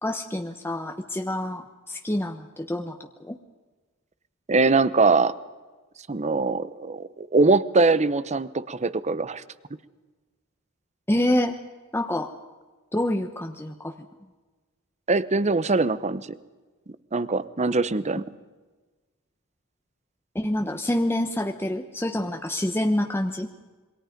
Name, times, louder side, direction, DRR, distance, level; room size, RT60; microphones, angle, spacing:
voice 1, 0.0-3.0 3.3-3.4 11.1-11.6 11.9-12.3 12.9-13.9 18.1-18.2 20.3-23.5, left 1 dB, 10° left, 5 dB, 1.0 m, -27 dB
voice 2, 4.5-5.3 6.1-9.4 15.1-16.3 17.1-18.2, right 3 dB, 30° right, 16 dB, 0.9 m, -22 dB
27.0 x 23.0 x 5.2 m, 1.3 s
head